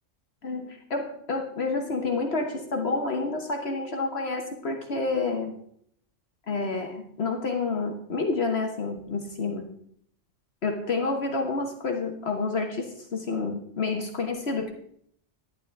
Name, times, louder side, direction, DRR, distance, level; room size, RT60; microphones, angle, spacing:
voice 1, 0.4-5.5 6.5-9.6 10.6-14.7, left 3 dB, 55° left, 4 dB, 1.3 m, -29 dB
11.5 x 11.0 x 3.4 m, 0.66 s
omnidirectional pair, 1.3 m